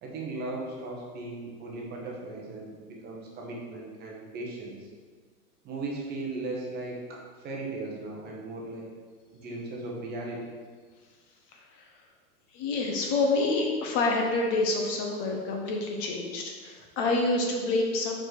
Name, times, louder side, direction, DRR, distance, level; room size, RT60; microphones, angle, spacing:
voice 1, 0.0-4.9 5.6-8.9 9.3-10.5, right 2 dB, 20° right, -2 dB, 0.9 m, -37 dB
voice 2, 12.5-18.2, left 2 dB, 35° left, 1 dB, 0.8 m, -27 dB
4.9 x 4.3 x 4.7 m, 1.5 s
hypercardioid pair, 130°, 46 cm